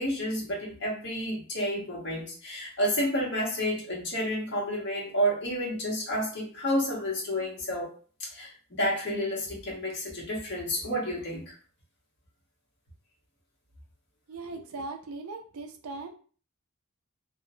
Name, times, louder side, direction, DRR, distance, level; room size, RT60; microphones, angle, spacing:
voice 1, 0.0-7.9 8.2-8.5 8.8-11.5, equal, 55° left, -3 dB, 0.9 m, -30 dB
voice 2, 14.3-16.1, right 3 dB, 75° right, 5 dB, 0.4 m, -39 dB
2.7 x 2.0 x 2.6 m, 0.41 s
head